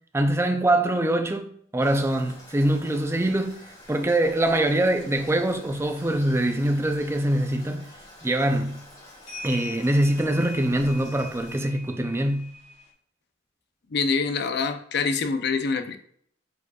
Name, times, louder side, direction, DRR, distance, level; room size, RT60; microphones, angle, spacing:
voice 1, 0.1-3.6 3.9-7.9 8.2-8.8 9.4-12.5, right 1 dB, 15° right, 0.5 m, -24 dB
Toilet flush, 1.8-11.6, left 1 dB, 20° left, 1.9 m, -48 dB
sound 1, 3.8-12.9, left 1 dB, 40° left, 2.4 m, -45 dB
voice 2, 13.9-16.0, left 4 dB, 60° left, 0.6 m, -25 dB
8.1 x 5.0 x 2.4 m
head